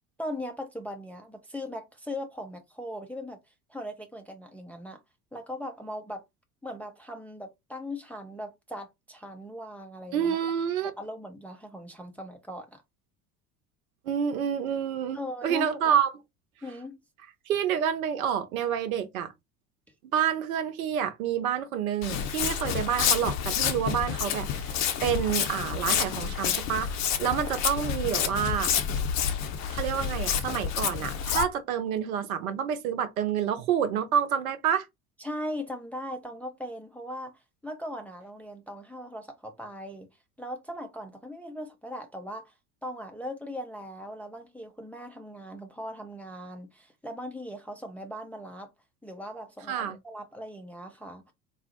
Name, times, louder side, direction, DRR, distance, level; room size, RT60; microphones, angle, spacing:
voice 1, 0.2-3.4 3.7-5.0 5.3-6.2 6.6-10.4 10.8-12.8 15.1-15.9 16.6-17.0 35.2-37.3 37.6-40.1 40.4-42.5 42.8-48.7 49.0-51.3, left 1 dB, 5° left, 0.4 m, -39 dB
voice 2, 10.1-10.9 14.0-16.1 17.5-19.3 20.1-26.9 27.2-28.7 29.7-34.9 49.7-50.0, right 8 dB, 70° right, 0.8 m, -28 dB
Walk footsteps, 22.0-31.4, left 8 dB, 40° left, 0.7 m, -29 dB
4.0 x 2.0 x 2.8 m
figure-of-eight pair, 70°, 45 cm